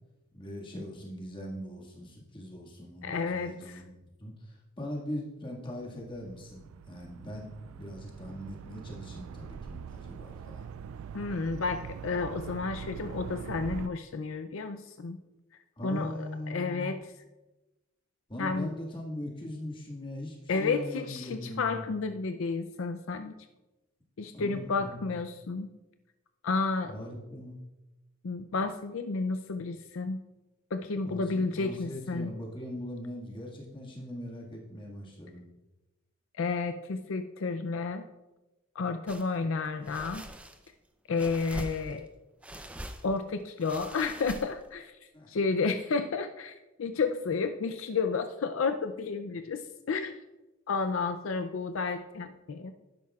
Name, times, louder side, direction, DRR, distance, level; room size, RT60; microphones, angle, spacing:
voice 1, 0.3-10.7 15.8-16.9 18.3-21.9 24.3-25.2 26.9-27.6 31.0-35.4 45.1-45.3, left 1 dB, 25° left, -3 dB, 1.8 m, -40 dB
voice 2, 3.0-3.8 11.1-15.2 15.8-17.0 18.4-18.7 20.5-23.3 24.2-25.7 26.4-27.0 28.2-30.2 30.7-32.3 36.4-38.0 38.8-40.3 41.1-42.1 43.0-44.9 45.3-49.6 49.9-50.2 50.7-52.7, left 4 dB, 75° left, 8 dB, 0.5 m, -31 dB
sound 1, 5.9-13.9, right 7 dB, 90° right, 0.3 m, -43 dB
sound 2, 39.1-39.3 39.8-40.7 41.2-42.1 42.4-43.2 43.6-44.7, right 1 dB, 5° right, 0.5 m, -43 dB
12.0 x 10.5 x 2.4 m, 1.0 s
head